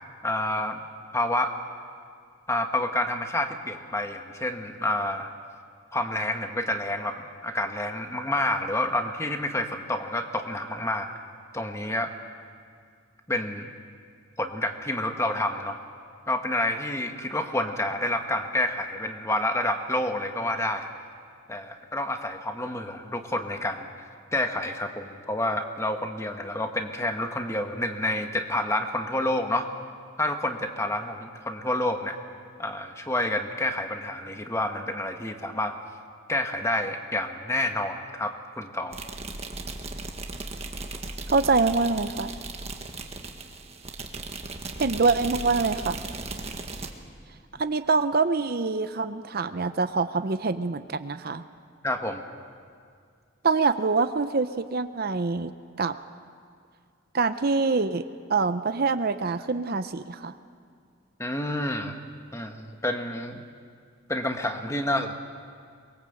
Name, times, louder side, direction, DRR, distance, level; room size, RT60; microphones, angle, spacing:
voice 1, 0.2-0.8 1.1-1.5 2.5-5.3 5.9-7.2 7.4-11.2 11.5-12.1 13.3-13.7 14.4-15.8 16.3-20.9 21.5-23.9 24.3-29.7 30.2-32.2 32.6-35.8 36.3-39.0 51.8-52.2 61.2-62.0 62.3-63.4 64.1-65.1, left 1 dB, 15° left, 5 dB, 1.3 m, -28 dB
sound 1, 38.9-46.9, right 3 dB, 30° right, 1.6 m, -37 dB
voice 2, 41.3-42.3 44.8-46.0 47.6-51.4 53.4-55.5 55.8-55.9 57.1-58.0 58.3-60.3, right 4 dB, 50° right, 11 dB, 0.7 m, -25 dB
23.5 x 22.0 x 7.9 m, 2.2 s
head